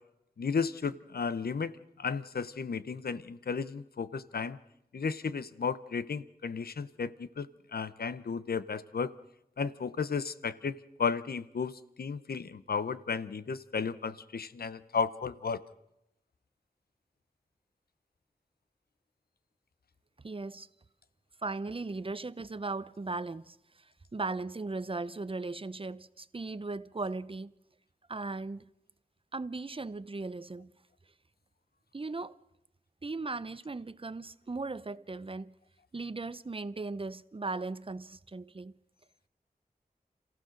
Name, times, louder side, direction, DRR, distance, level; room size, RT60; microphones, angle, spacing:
voice 1, 0.4-1.7 2.0-4.6 4.9-9.1 9.6-15.6, left 5 dB, 85° left, 0.8 m, -34 dB
voice 2, 20.2-20.7 21.4-23.6 24.1-27.5 28.1-28.7 29.3-30.7 31.9-32.3 33.0-35.5 35.9-38.7, right 3 dB, 35° right, 0.7 m, -37 dB
27.0 x 15.5 x 6.5 m
wide cardioid pair, 50°, 16 cm